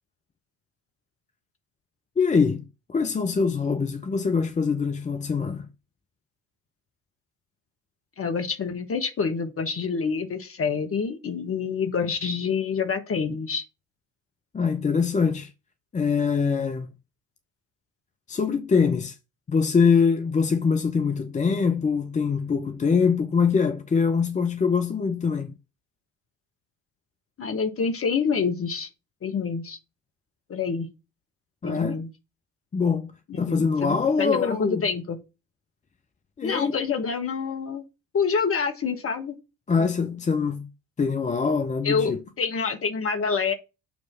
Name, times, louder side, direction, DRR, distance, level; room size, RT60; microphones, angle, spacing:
voice 1, 2.2-5.7 14.5-15.5 15.9-16.9 18.3-19.2 19.5-25.5 31.6-32.0 32.7-33.1 33.4-34.9 36.4-36.8 39.7-40.7 41.0-42.2, left 5 dB, 20° left, 0.6 m, -23 dB
voice 2, 8.2-13.6 27.4-28.9 29.2-29.8 30.5-30.9 31.6-32.1 33.4-35.2 36.4-37.8 38.1-39.4 39.8-39.9 41.8-43.5, left 5 dB, 35° left, 1.4 m, -27 dB
7.1 x 3.1 x 5.6 m
figure-of-eight pair, 55°, 40 cm